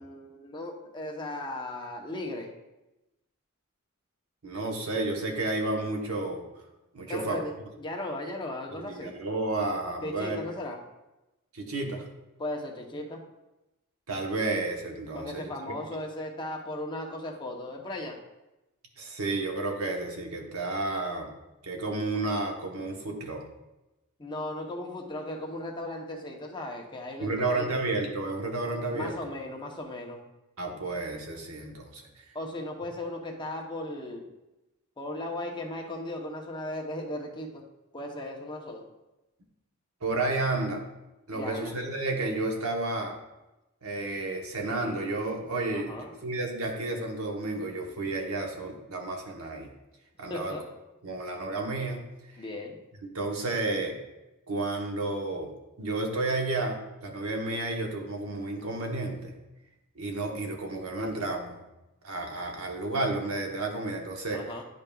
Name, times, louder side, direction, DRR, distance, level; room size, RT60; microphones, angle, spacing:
voice 1, 0.0-2.5 7.1-7.5 7.8-9.2 10.0-10.8 12.4-13.2 15.1-18.2 24.2-27.7 28.9-30.2 32.3-34.3 35.0-37.7 37.9-38.9 41.3-41.7 45.7-46.1 50.3-50.6 52.4-52.8 64.3-64.6, left 1 dB, 20° left, 1 dB, 0.8 m, -36 dB
voice 2, 4.4-6.4 6.9-7.5 8.7-10.4 11.5-12.1 14.1-15.5 19.0-21.3 21.6-23.4 27.2-29.2 30.6-32.2 40.0-40.8 41.3-43.2 43.8-49.7 50.2-50.6 51.0-52.0 52.3-52.4 53.0-54.0 54.5-55.5 55.8-59.3 60.0-61.6 62.0-64.4, right 2 dB, 75° right, 2 dB, 1.0 m, -31 dB
10.0 x 5.3 x 2.3 m, 1.0 s
head